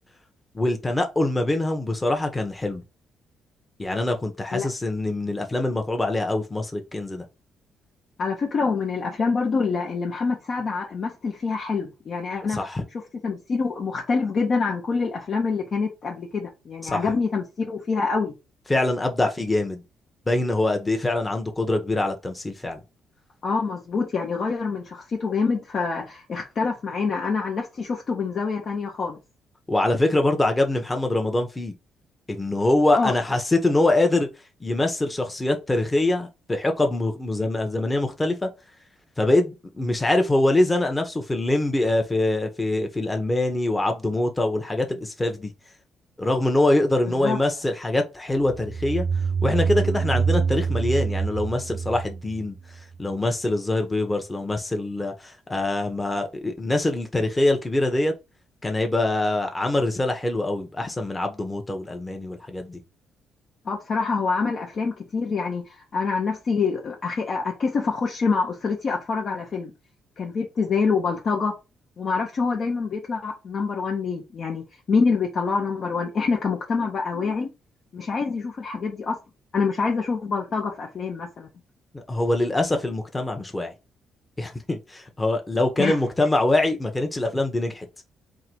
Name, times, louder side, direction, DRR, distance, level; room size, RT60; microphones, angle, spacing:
voice 1, 0.5-2.8 3.8-7.2 12.5-12.8 16.8-17.0 18.7-19.8 20.3-22.8 29.7-31.7 32.3-34.3 34.6-38.5 39.2-45.5 46.2-49.0 49.4-52.5 53.0-58.1 58.6-62.8 81.9-83.7 84.4-87.9, left 2 dB, 15° left, 1.0 m, -24 dB
voice 2, 8.2-12.7 13.2-18.3 23.4-29.2 32.9-33.1 47.2-47.4 63.6-69.7 70.2-71.5 72.0-77.5 77.9-79.2 79.5-81.5 85.8-86.0, left 4 dB, 50° left, 0.9 m, -26 dB
sound 1, 48.4-53.0, right 5 dB, 55° right, 0.5 m, -26 dB
3.8 x 2.8 x 4.6 m
cardioid pair, 90°, 0 cm